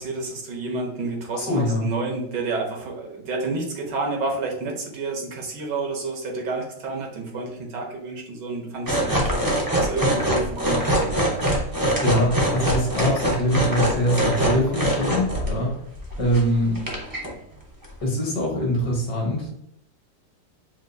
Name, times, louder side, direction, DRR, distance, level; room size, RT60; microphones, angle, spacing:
voice 1, 0.0-9.4 9.7-11.5, right 3 dB, 70° right, 1 dB, 1.6 m, -30 dB
voice 2, 1.3-1.9 12.0-15.8 16.2-16.8 18.0-19.6, equal, 60° left, -1 dB, 1.7 m, -23 dB
sound 1, 8.9-15.5 16.0-16.4 16.7-17.3 17.8-17.9, equal, 30° right, 0.4 m, -23 dB
5.9 x 2.5 x 2.6 m, 0.75 s
omnidirectional pair, 2.0 m